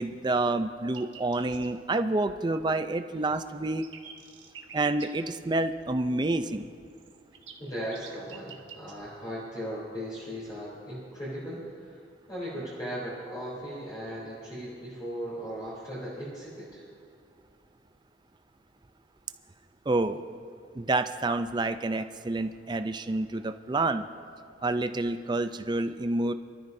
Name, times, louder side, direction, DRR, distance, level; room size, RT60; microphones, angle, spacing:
voice 1, 0.0-3.9 4.7-6.7 19.9-20.3 20.7-24.1 24.6-26.3, right 2 dB, 25° right, 9 dB, 0.4 m, -28 dB
sound 1, 0.8-1.7 2.9-5.1 6.9-8.9, right 7 dB, 80° right, 1.3 m, -48 dB
voice 2, 7.6-12.0 12.3-16.9, equal, 25° left, -9 dB, 3.3 m, -37 dB
23.5 x 13.0 x 2.7 m, 2.5 s
head